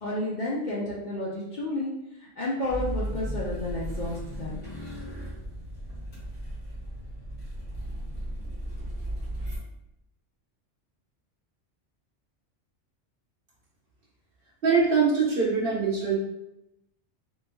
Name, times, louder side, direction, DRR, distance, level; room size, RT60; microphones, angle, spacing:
voice 1, 0.0-1.9 2.2-4.6, left 1 dB, 50° left, -6 dB, 0.6 m, -31 dB
sound 1, 2.7-9.6, right 1 dB, 10° left, 1.3 m, -35 dB
voice 2, 14.6-16.2, right 5 dB, 50° right, -5 dB, 1.1 m, -23 dB
3.5 x 3.1 x 2.2 m, 0.88 s
omnidirectional pair, 1.2 m